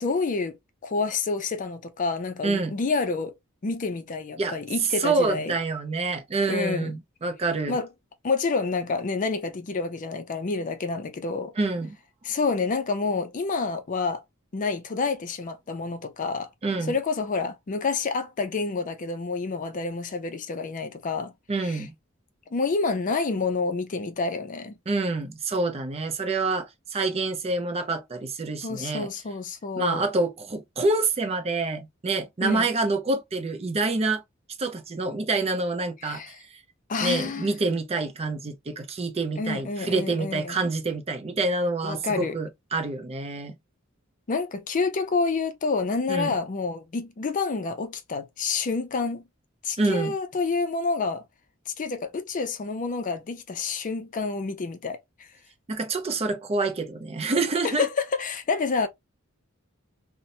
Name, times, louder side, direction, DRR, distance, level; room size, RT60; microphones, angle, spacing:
voice 1, 0.0-3.4 3.6-5.5 6.5-6.9 7.7-7.9 8.2-11.5 12.2-14.2 14.5-16.5 16.9-21.3 21.6-21.9 22.5-24.7 28.6-30.0 32.4-32.7 36.0-36.4 36.9-37.5 39.4-40.6 41.8-42.4 44.3-49.2 49.6-51.2 51.7-55.3 57.6-58.9, left 4 dB, 40° left, 0.4 m, -28 dB
voice 2, 2.4-2.7 4.4-4.6 5.0-7.8 11.6-12.0 16.6-16.9 21.5-21.9 24.9-29.1 29.8-34.2 34.6-36.2 37.0-43.6 46.1-46.3 49.8-50.1 55.7-57.9, right 3 dB, 30° right, 0.5 m, -27 dB
2.9 x 2.1 x 2.6 m
head